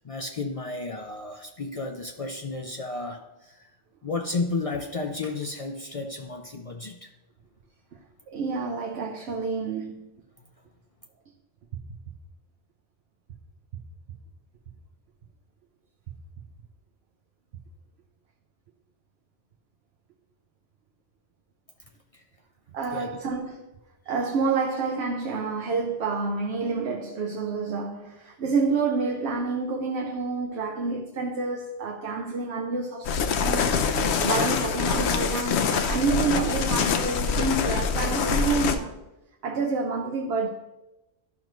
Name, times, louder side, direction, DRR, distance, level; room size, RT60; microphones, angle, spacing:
voice 1, 0.0-3.7 4.0-7.1 22.1-22.2 22.9-23.2, left 3 dB, 50° left, 0.4 m, -33 dB
voice 2, 8.3-10.1 11.7-11.8 22.7-23.6 24.1-33.7 34.2-38.9 39.4-40.5, right 4 dB, 65° right, 0.9 m, -28 dB
sound 1, 33.0-38.8, left 5 dB, 70° left, 0.9 m, -25 dB
12.0 x 5.2 x 3.0 m
omnidirectional pair, 1.2 m